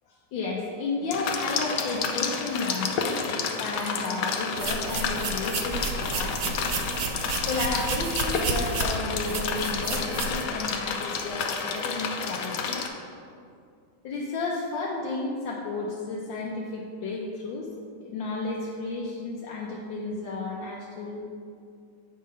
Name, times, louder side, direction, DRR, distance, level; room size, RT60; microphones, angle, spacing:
voice 1, 0.1-6.7 7.5-12.8 14.0-17.7 18.0-21.2, left 3 dB, 85° left, -3 dB, 1.4 m, -32 dB
sound 1, 1.1-12.9, left 5 dB, 70° left, 0.8 m, -30 dB
sound 2, 4.6-10.4, right 4 dB, 85° right, 0.6 m, -31 dB
8.4 x 3.8 x 5.3 m, 2.4 s
omnidirectional pair, 2.0 m